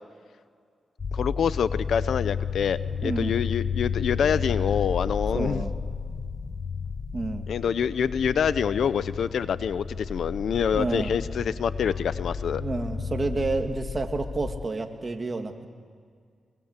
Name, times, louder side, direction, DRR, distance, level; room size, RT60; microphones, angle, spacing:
sound 1, 1.0-14.7, left 6 dB, 50° left, 1.1 m, -32 dB
voice 1, 1.1-5.6 7.5-12.6, left 7 dB, 80° left, 15 dB, 0.8 m, -26 dB
voice 2, 3.0-3.3 5.3-5.7 7.1-7.5 10.7-11.1 12.5-15.7, right 3 dB, 35° right, 4 dB, 2.6 m, -29 dB
24.0 x 23.5 x 8.3 m, 2.1 s
cardioid pair, 65°, 0 cm